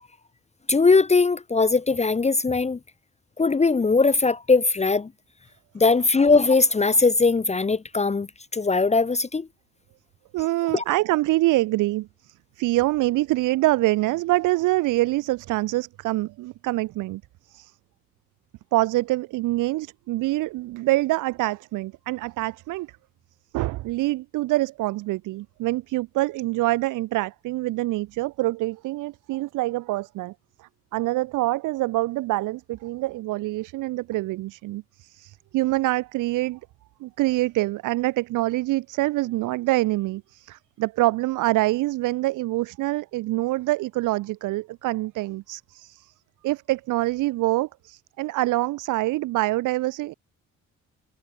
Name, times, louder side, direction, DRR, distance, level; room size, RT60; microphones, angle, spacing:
voice 1, 0.7-2.8 3.4-5.1 5.7-9.5 10.7-10.8, left 4 dB, 20° left, 0.9 m, -20 dB
voice 2, 10.3-17.2 17.5-17.7 18.7-22.9 23.5-30.3 30.6-36.6 37.0-46.1 46.4-50.1, right 18 dB, 90° right, 0.8 m, -25 dB
cardioid pair, 90°, 30 cm